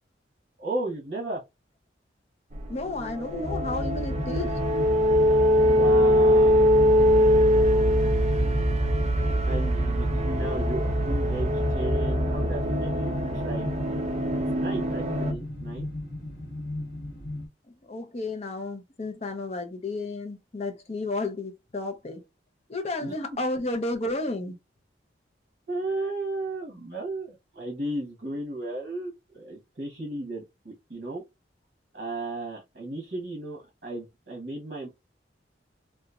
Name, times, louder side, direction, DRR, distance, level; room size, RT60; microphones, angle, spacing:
voice 1, 0.6-1.4 5.6-6.9 9.5-13.7 14.4-15.9 23.0-23.1 25.7-31.2 31.9-34.9, right 2 dB, 55° right, 1.1 m, -34 dB
sound 1, 2.5-15.3, equal, 35° right, 0.4 m, -23 dB
voice 2, 2.7-4.5 17.8-22.2 22.7-24.5, left 2 dB, 35° left, 0.6 m, -32 dB
sound 2, 3.4-17.5, left 1 dB, 90° left, 1.0 m, -31 dB
2.9 x 2.3 x 2.4 m
head